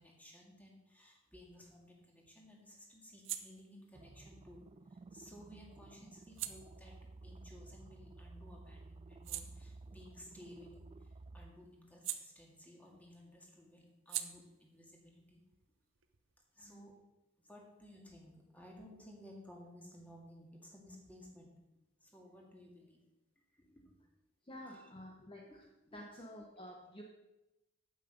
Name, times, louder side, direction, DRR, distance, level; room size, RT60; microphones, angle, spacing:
voice 1, 0.0-4.6 4.9-15.4 16.5-16.9 17.4-21.5 22.0-23.0 23.5-24.0 25.5-25.6 25.9-26.1, left 1 dB, 10° left, -1 dB, 1.9 m, -57 dB
sound 1, 1.5-8.3 8.7-13.0 13.2-16.6, right 13 dB, 65° right, 0.7 m, -49 dB
sound 2, 3.9-11.5, right 3 dB, 25° right, 0.3 m, -54 dB
voice 2, 16.6-16.9 24.4-25.7 25.9-27.0, left 1 dB, 25° left, 1 dB, 0.9 m, -51 dB
8.9 x 8.0 x 5.2 m, 0.97 s
head